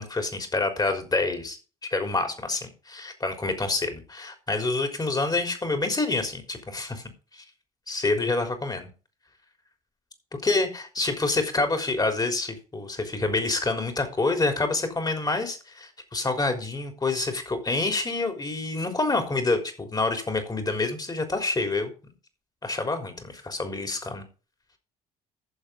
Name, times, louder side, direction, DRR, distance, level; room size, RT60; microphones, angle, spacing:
voice 1, 0.0-7.0 7.3-7.4 7.9-8.9 10.4-21.9 22.6-24.2, left 3 dB, 20° left, 5 dB, 3.8 m, -27 dB
15.0 x 7.3 x 3.9 m, 0.34 s
figure-of-eight pair, 50°, 18 cm